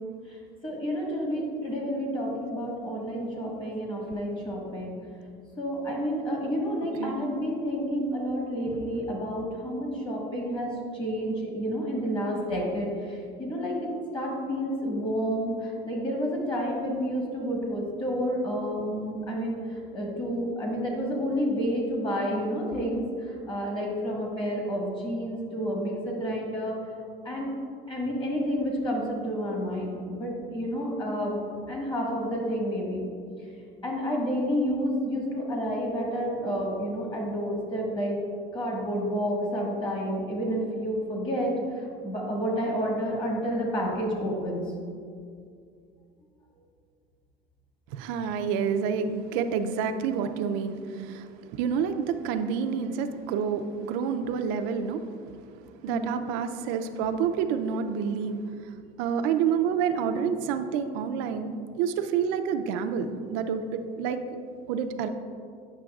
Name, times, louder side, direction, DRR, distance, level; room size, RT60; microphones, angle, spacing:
voice 1, 0.6-5.0 5.6-19.6 19.9-26.8 27.2-27.5 27.9-31.4 31.7-33.1 33.8-38.2 38.5-44.6 55.9-56.2, equal, 25° left, -2 dB, 1.3 m, -30 dB
voice 2, 47.9-51.3 51.5-55.0 55.8-58.4 59.0-64.2 64.7-65.1, right 7 dB, 85° right, 7 dB, 0.4 m, -28 dB
8.8 x 6.0 x 2.3 m, 2.3 s
cardioid pair, 145°, 19 cm